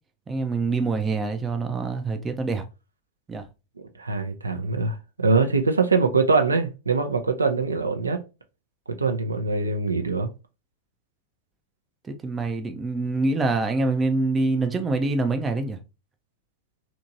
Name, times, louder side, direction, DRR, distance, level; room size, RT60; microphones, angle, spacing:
voice 1, 0.3-2.6 3.3-3.5 12.0-15.8, right 3 dB, 15° right, 0.4 m, -25 dB
voice 2, 4.0-8.2 8.9-10.3, right 4 dB, 75° right, 0.4 m, -23 dB
2.9 x 2.6 x 2.5 m
figure-of-eight pair, 90°, 0 cm